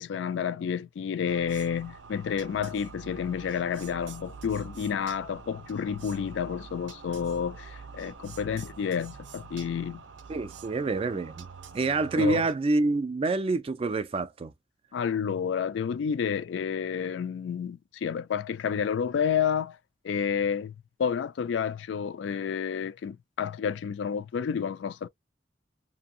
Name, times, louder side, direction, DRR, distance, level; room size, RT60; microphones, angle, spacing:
voice 1, 0.0-10.0 12.2-12.5 14.9-19.8 20.0-20.7 21.0-25.1, left 7 dB, 70° left, 0.3 m, -30 dB
sound 1, 1.3-12.5, right 5 dB, 80° right, 0.5 m, -46 dB
voice 2, 10.3-11.5 11.7-14.5, right 3 dB, 30° right, 0.3 m, -27 dB
2.7 x 2.4 x 2.5 m
head